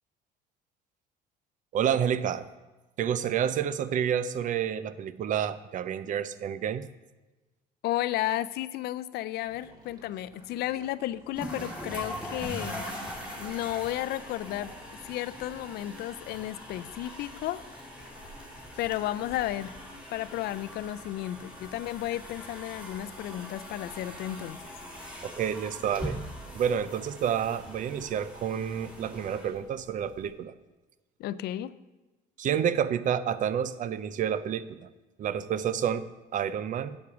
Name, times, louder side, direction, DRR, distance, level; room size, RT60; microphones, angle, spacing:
voice 1, 1.7-2.5 3.0-6.9 25.2-26.2 26.5-30.5 32.4-34.9 35.2-37.0, right 8 dB, 50° right, 15 dB, 0.5 m, -29 dB
voice 2, 7.8-14.8 15.0-17.6 18.8-19.7 20.1-24.6 31.2-31.7, left 14 dB, 75° left, 16 dB, 0.4 m, -33 dB
Gurgling / Liquid, 9.4-17.2, right 1 dB, 20° right, 1.9 m, -59 dB
sound 1, 9.4-29.3, right 1 dB, 80° right, 3.6 m, -59 dB
sound 2, 11.4-30.2, equal, 5° right, 2.9 m, -42 dB
9.3 x 7.3 x 4.8 m, 1.1 s
cardioid pair, 110°, 17 cm